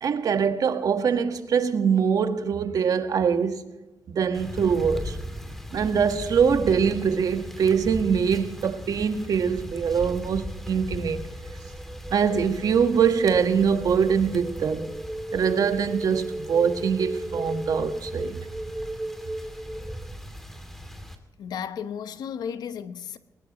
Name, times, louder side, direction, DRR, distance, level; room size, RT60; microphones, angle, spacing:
voice 1, 0.0-3.7 4.1-5.2 5.7-11.2 12.1-14.9 15.3-18.4, right 6 dB, 65° right, 1.6 m, -23 dB
sound 1, 4.3-21.2, equal, 5° left, 2.7 m, -39 dB
sound 2, 10.4-20.2, right 1 dB, 10° right, 1.0 m, -36 dB
voice 2, 21.4-23.2, left 8 dB, 85° left, 1.0 m, -34 dB
21.0 x 20.5 x 3.1 m
cardioid pair, 100°, 7 cm